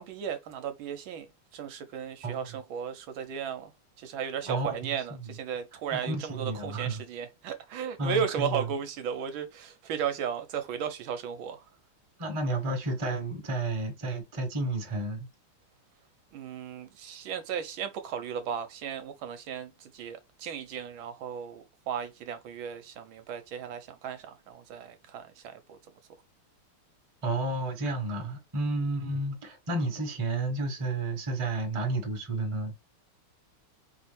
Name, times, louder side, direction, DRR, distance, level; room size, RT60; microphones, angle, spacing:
voice 1, 0.0-3.7 4.0-11.7 16.3-25.8, right 8 dB, 75° right, 1.4 m, -35 dB
voice 2, 4.4-5.3 5.9-7.0 8.0-8.6 12.2-15.3 27.2-32.7, right 2 dB, 20° right, 0.8 m, -31 dB
4.6 x 2.8 x 3.1 m
omnidirectional pair, 2.4 m